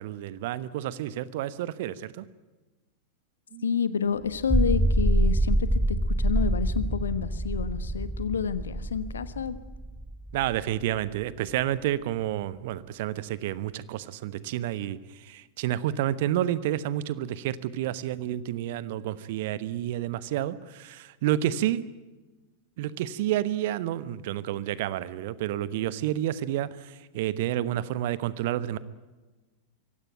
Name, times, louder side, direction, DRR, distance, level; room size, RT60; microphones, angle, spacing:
voice 1, 0.0-2.2 3.5-3.7 10.3-21.8 22.8-28.8, right 12 dB, 50° right, 17 dB, 1.0 m, -30 dB
voice 2, 3.6-9.6, left 6 dB, 70° left, 15 dB, 1.3 m, -29 dB
sound 1, 4.3-10.8, right 1 dB, ahead, 0.8 m, -26 dB
24.5 x 16.0 x 9.1 m, 1.2 s
figure-of-eight pair, 90°, 0 cm